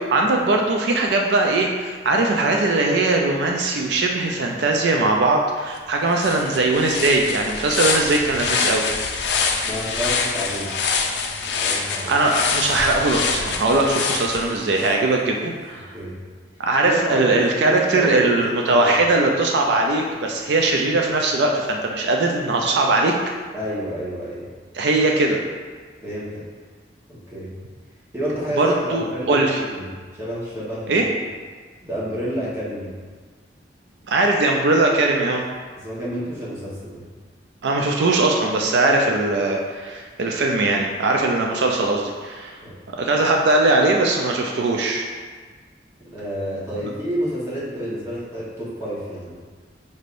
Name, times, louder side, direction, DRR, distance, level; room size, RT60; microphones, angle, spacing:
voice 1, 0.0-8.8 12.1-15.9 16.6-23.1 24.7-25.4 28.6-29.6 30.9-31.0 34.1-35.4 37.6-42.5 43.0-45.1, right 2 dB, 75° right, 1 dB, 0.4 m, -20 dB
sound 1, 5.8-5.9 6.2-14.9, left 5 dB, 80° left, 0.4 m, -25 dB
voice 2, 9.6-10.7 11.6-12.2 15.9-16.2 16.8-18.9 23.5-24.4 26.0-26.4 27.1-27.5 28.1-29.9 30.2-30.9 31.8-32.9 35.8-37.0 42.6-42.7 46.1-49.3, right 1 dB, 15° right, -8 dB, 1.1 m, -29 dB
5.3 x 3.3 x 2.5 m, 1.5 s
head